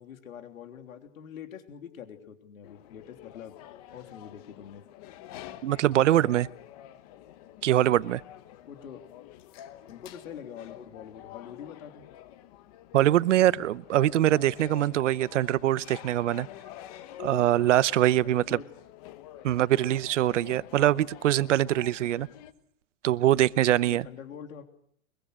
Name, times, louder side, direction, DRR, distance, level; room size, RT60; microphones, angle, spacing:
voice 1, 0.0-3.6 3.9-4.8 8.6-9.0 9.9-12.0 18.2-18.7 20.9-21.1 23.8-24.6, left 8 dB, 85° left, 3.3 m, -44 dB
sound 1, 2.6-22.5, left 12 dB, 30° left, 1.2 m, -48 dB
voice 2, 5.6-6.5 7.6-8.2 12.9-16.5 17.2-18.4 19.4-22.3 23.0-24.1, right 13 dB, 65° right, 0.9 m, -23 dB
23.5 x 23.0 x 6.6 m
supercardioid pair, 170°, 40 cm